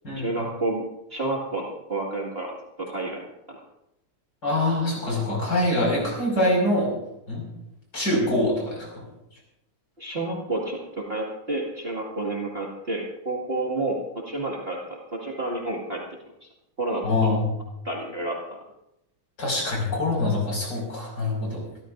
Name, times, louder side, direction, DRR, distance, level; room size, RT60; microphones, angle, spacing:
voice 1, 0.1-0.8 1.1-2.5 2.8-3.6 10.0-16.0 16.8-17.3 17.8-18.4, right 2 dB, 30° right, -3 dB, 2.2 m, -30 dB
voice 2, 4.4-6.9 7.3-7.5 7.9-9.1 17.0-17.5 19.4-21.7, left 1 dB, 45° left, -2 dB, 6.2 m, -24 dB
27.0 x 13.5 x 2.6 m, 0.83 s
omnidirectional pair, 2.3 m